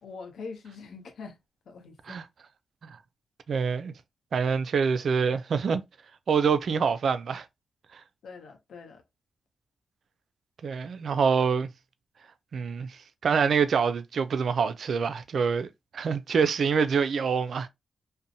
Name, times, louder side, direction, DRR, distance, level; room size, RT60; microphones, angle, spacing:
voice 1, 0.0-1.4 1.7-2.2 8.2-9.0, left 4 dB, 75° left, 0.7 m, -43 dB
voice 2, 3.5-3.9 4.3-5.8 6.3-7.5 7.9-8.0 10.6-11.7 12.5-15.7 15.9-17.7, right 6 dB, 65° right, 0.3 m, -26 dB
2.5 x 2.0 x 2.7 m
cardioid pair, 60°, 0 cm